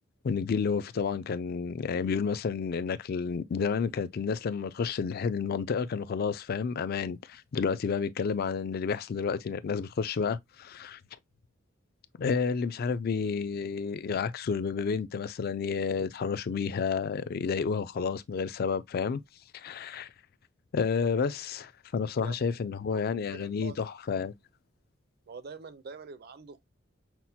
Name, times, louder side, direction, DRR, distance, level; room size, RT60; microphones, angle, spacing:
voice 1, 0.2-11.0 12.2-19.2 19.5-20.1 20.7-24.3, left 5 dB, 50° left, 0.4 m, -30 dB
voice 2, 22.0-22.4 22.9-23.0 23.3-23.8 25.3-26.6, right 5 dB, 50° right, 0.5 m, -45 dB
5.9 x 2.1 x 2.7 m
head